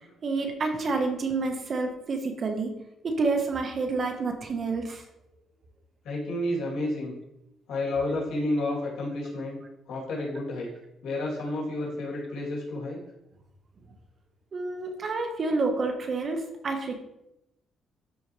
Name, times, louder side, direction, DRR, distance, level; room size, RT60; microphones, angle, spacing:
voice 1, 0.2-2.7 3.0-5.0 14.5-17.0, right 3 dB, 50° right, 4 dB, 1.4 m, -29 dB
voice 2, 6.0-7.1 7.7-9.6 9.9-10.7 11.0-13.0, left 1 dB, 75° left, -4 dB, 3.2 m, -30 dB
12.0 x 4.5 x 3.3 m, 0.87 s
cardioid pair, 90°, 0 cm